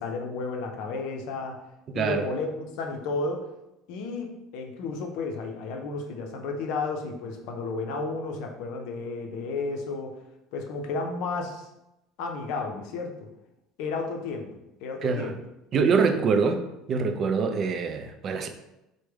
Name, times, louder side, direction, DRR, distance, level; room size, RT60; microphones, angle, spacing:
voice 1, 0.0-1.6 1.9-3.4 3.9-10.2 10.5-11.7 12.2-13.3 13.8-14.5 14.8-15.4, left 3 dB, 70° left, 3 dB, 0.5 m, -32 dB
voice 2, 15.0-15.3 15.7-16.6 16.9-18.5, right 5 dB, 45° right, 8 dB, 0.4 m, -24 dB
3.3 x 2.1 x 3.2 m, 0.92 s
hypercardioid pair, 80°, 0 cm